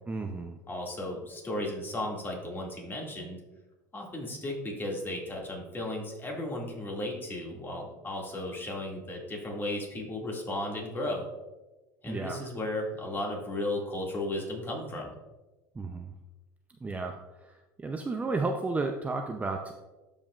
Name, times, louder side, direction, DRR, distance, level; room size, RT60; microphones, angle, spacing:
voice 1, 0.1-0.6 12.1-12.4 15.8-16.1 16.8-19.7, right 3 dB, 15° right, 4 dB, 0.5 m, -33 dB
voice 2, 0.7-3.4 3.9-11.3 12.0-15.1, left 1 dB, 20° left, -1 dB, 2.1 m, -35 dB
12.0 x 5.3 x 2.4 m, 1.1 s
supercardioid pair, 100°, 9 cm